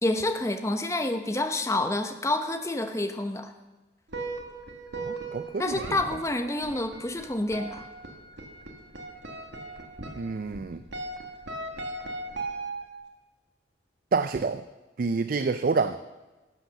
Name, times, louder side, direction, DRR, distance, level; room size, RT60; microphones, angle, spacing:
voice 1, 0.0-3.5 5.6-7.9, left 2 dB, 15° left, 7 dB, 0.8 m, -28 dB
sound 1, 4.1-13.1, right 2 dB, 80° right, 1.8 m, -38 dB
voice 2, 4.9-6.0 10.2-10.8 14.1-14.6 15.0-16.0, right 4 dB, 50° right, 11 dB, 0.4 m, -28 dB
11.5 x 8.1 x 6.9 m, 1.2 s
head